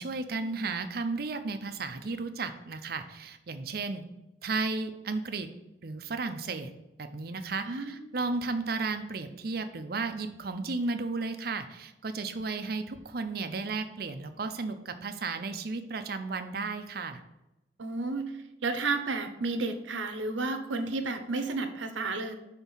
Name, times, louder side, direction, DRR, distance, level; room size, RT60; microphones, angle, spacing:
voice 1, 0.0-4.0 4.4-5.5 5.8-6.7 7.0-17.2, right 3 dB, 50° right, 8 dB, 0.5 m, -34 dB
voice 2, 7.6-8.0 17.8-18.3 18.6-22.3, right 3 dB, 85° right, 8 dB, 0.7 m, -31 dB
5.9 x 3.5 x 5.5 m, 0.94 s
head